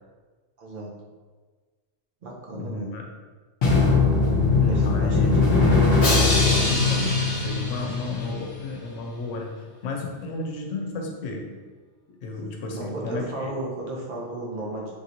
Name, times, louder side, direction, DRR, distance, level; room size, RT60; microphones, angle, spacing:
voice 1, 0.6-0.9 2.2-2.9 4.7-5.5 8.3-8.5 12.7-14.9, right 2 dB, 50° right, -3 dB, 0.8 m, -34 dB
voice 2, 2.5-3.1 4.6-5.6 6.7-9.6 9.8-11.5 12.2-13.5, left 3 dB, 85° left, 1 dB, 0.9 m, -33 dB
Drum, 3.6-8.5, left 3 dB, 60° left, 0.8 m, -20 dB
3.1 x 2.8 x 2.6 m, 1.4 s
omnidirectional pair, 1.3 m